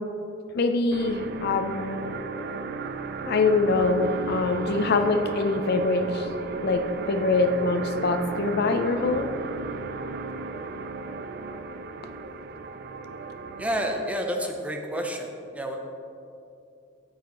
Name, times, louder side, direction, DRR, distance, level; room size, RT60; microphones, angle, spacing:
voice 1, 0.5-2.1 3.3-6.3 6.6-9.3, left 3 dB, 55° left, 7 dB, 0.5 m, -24 dB
sound 1, 0.9-14.2, right 4 dB, 55° right, 0.4 m, -35 dB
voice 2, 13.6-15.8, equal, 5° right, 3 dB, 0.6 m, -30 dB
9.4 x 8.2 x 3.0 m, 2.7 s
head